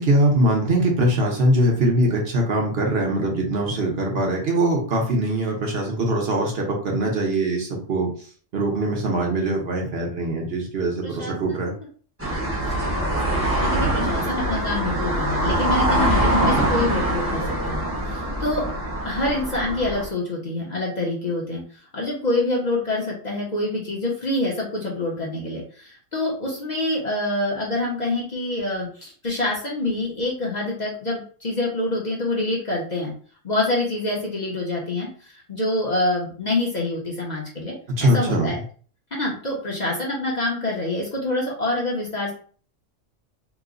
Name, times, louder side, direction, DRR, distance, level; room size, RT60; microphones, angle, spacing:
voice 1, 0.0-8.3 8.5-11.7 37.9-38.6, right 1 dB, 55° right, 0 dB, 1.0 m, -22 dB
voice 2, 11.0-11.9 12.5-18.6 19.0-21.6 21.9-33.1 33.4-38.6 39.1-42.3, left 2 dB, 40° left, -3 dB, 0.8 m, -26 dB
sound 1, 12.2-20.1, right 1 dB, 15° right, 0.7 m, -23 dB
3.0 x 2.1 x 3.7 m, 0.43 s
omnidirectional pair, 1.3 m